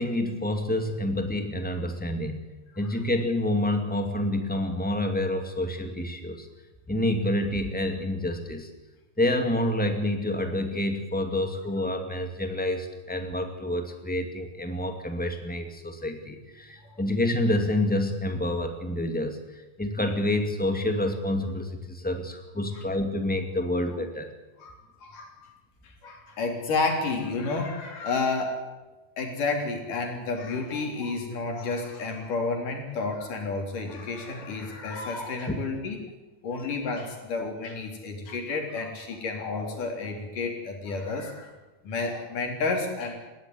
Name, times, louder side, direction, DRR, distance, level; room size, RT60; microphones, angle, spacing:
voice 1, 0.0-2.5 2.7-6.5 6.9-8.7 9.2-19.4 19.8-24.3 35.5-35.6, left 1 dB, 5° left, 5 dB, 1.4 m, -28 dB
voice 2, 25.0-25.4 26.0-28.6 29.2-36.0 36.4-41.5 41.8-43.1, left 3 dB, 65° left, 2 dB, 5.0 m, -30 dB
20.0 x 16.0 x 9.3 m, 1.1 s
omnidirectional pair, 4.0 m